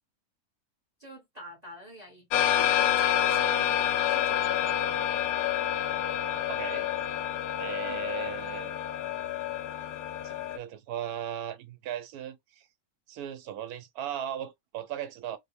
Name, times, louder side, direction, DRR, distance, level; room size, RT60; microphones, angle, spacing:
voice 1, 1.0-3.7 4.1-4.7 7.8-8.1, right 1 dB, 30° right, 1.1 m, -45 dB
sound 1, 2.3-10.6, left 11 dB, 75° left, 1.0 m, -28 dB
voice 2, 6.5-6.9 7.6-8.8 10.2-12.7 13.1-15.4, right 10 dB, 80° right, 1.2 m, -37 dB
3.7 x 2.1 x 3.4 m
omnidirectional pair, 1.6 m